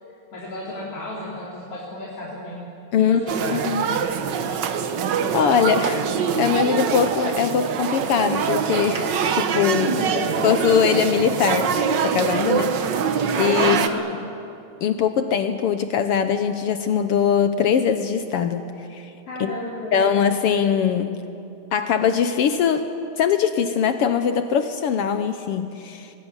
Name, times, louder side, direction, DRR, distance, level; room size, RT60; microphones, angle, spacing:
voice 1, 0.3-2.6 3.0-4.1 9.9-10.4 13.6-14.0 19.3-20.0, left 1 dB, 50° left, -6 dB, 4.4 m, -33 dB
sound 1, 3.3-13.9, right 7 dB, 75° right, 1.0 m, -24 dB
voice 2, 3.5-3.9 4.5-4.6 5.3-6.1 6.4-10.0 10.4-11.7 12.0-13.0 13.4-13.8 14.8-18.6 18.9-19.1 19.4-19.5 19.9-21.2 21.7-22.9 23.2-26.1, left 7 dB, 70° left, 9 dB, 1.4 m, -21 dB
23.0 x 18.0 x 9.8 m, 2.6 s
omnidirectional pair, 3.5 m